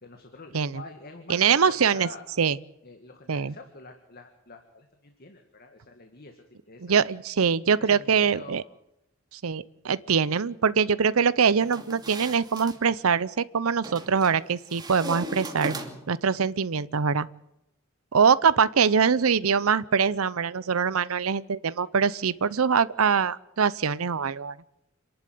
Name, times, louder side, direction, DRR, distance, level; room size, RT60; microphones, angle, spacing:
voice 1, 0.0-2.2 2.8-6.9 7.8-8.6, left 3 dB, 45° left, 5 dB, 2.1 m, -46 dB
voice 2, 1.3-2.1 2.4-2.6 3.3-3.5 6.8-8.6 9.3-15.8 16.1-17.3 18.1-24.6, right 6 dB, 90° right, 18 dB, 0.7 m, -23 dB
sound 1, 11.6-12.8 13.8-14.3 14.7-16.2, right 1 dB, 20° right, 2.6 m, -38 dB
27.5 x 11.5 x 9.4 m, 0.86 s
head